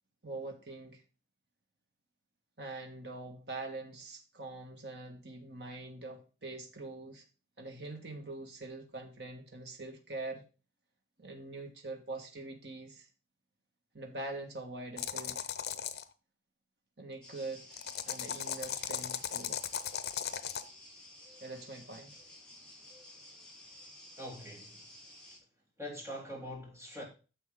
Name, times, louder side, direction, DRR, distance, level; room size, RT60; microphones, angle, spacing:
voice 1, 0.2-1.0 2.6-7.2 7.6-10.4 11.2-13.1 13.9-15.4 17.0-17.7 18.1-19.6 21.4-22.2, right 2 dB, 70° right, 1.8 m, -43 dB
sound 1, 15.0-16.0 17.7-20.6, left 8 dB, 65° left, 0.7 m, -37 dB
sound 2, 17.2-25.4, left 1 dB, 5° left, 4.3 m, -54 dB
voice 2, 24.2-24.8 25.8-27.0, equal, 15° right, 3.2 m, -43 dB
10.0 x 6.9 x 3.8 m
head